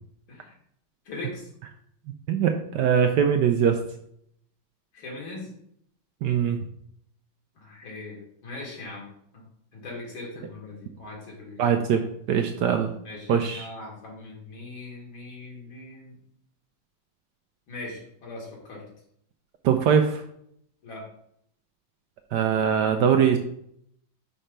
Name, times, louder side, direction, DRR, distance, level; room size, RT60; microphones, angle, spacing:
voice 1, 1.1-1.5 4.9-5.5 7.6-9.1 9.3-9.5 9.7-11.6 13.0-16.2 17.7-18.9 20.8-21.1, left 2 dB, 70° left, -3 dB, 2.8 m, -40 dB
voice 2, 2.3-3.8 6.2-6.6 11.6-12.0 12.3-12.9 13.3-13.7 19.6-20.2 22.3-23.4, right 8 dB, 75° right, 6 dB, 1.0 m, -21 dB
5.5 x 4.3 x 5.2 m, 0.70 s
omnidirectional pair, 2.2 m